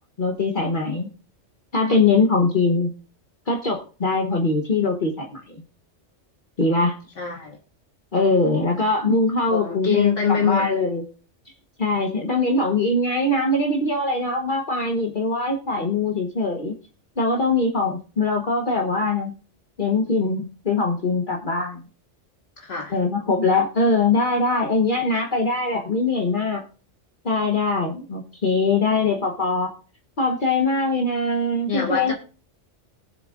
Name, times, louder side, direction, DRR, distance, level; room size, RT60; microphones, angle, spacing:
voice 1, 0.2-1.1 1.7-2.9 3.5-5.6 6.6-7.0 8.1-11.0 11.8-16.7 17.2-19.3 19.8-21.8 22.9-26.6 27.2-29.7 30.2-32.1, left 3 dB, 45° left, 1.4 m, -22 dB
voice 2, 7.2-7.6 9.5-10.7 22.6-22.9 31.7-32.1, left 6 dB, 80° left, 2.3 m, -23 dB
20.0 x 7.2 x 2.5 m
omnidirectional pair, 1.3 m